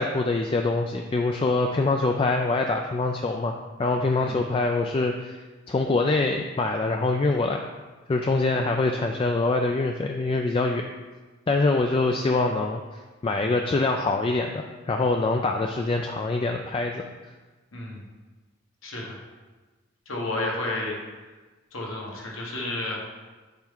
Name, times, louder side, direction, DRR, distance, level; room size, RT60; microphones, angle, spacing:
voice 1, 0.0-3.5 3.8-5.4 5.7-7.6 8.1-10.9 11.5-12.8 13.2-17.0, left 3 dB, 25° left, 3 dB, 0.3 m, -24 dB
voice 2, 17.7-18.0 18.8-19.2 20.1-21.0 21.7-23.0, left 2 dB, 75° left, -2 dB, 1.5 m, -31 dB
7.2 x 4.4 x 3.9 m, 1.3 s
head